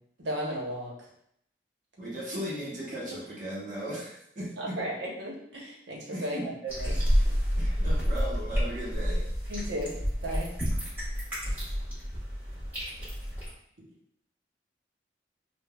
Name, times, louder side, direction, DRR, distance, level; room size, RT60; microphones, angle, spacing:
voice 1, 0.2-1.1 3.1-3.2 4.6-7.2 9.5-9.9 10.2-10.5, equal, 75° right, -2 dB, 0.9 m, -35 dB
voice 2, 2.0-4.8 6.1-6.5 7.6-9.2, equal, 50° right, -6 dB, 0.9 m, -37 dB
sound 1, 6.7-13.5, equal, 10° right, 1.4 m, -29 dB
5.4 x 2.2 x 2.3 m, 0.71 s
head